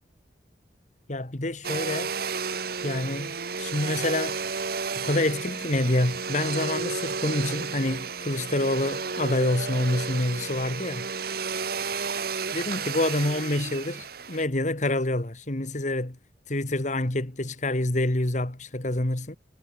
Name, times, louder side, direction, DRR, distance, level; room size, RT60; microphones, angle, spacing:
voice 1, 1.1-2.1 2.8-4.4 4.9-11.1 12.5-16.2 16.5-19.4, left 1 dB, 45° left, 1.9 m, -27 dB
Domestic sounds home sounds, 1.6-14.5, right 5 dB, 60° right, 1.8 m, -32 dB
head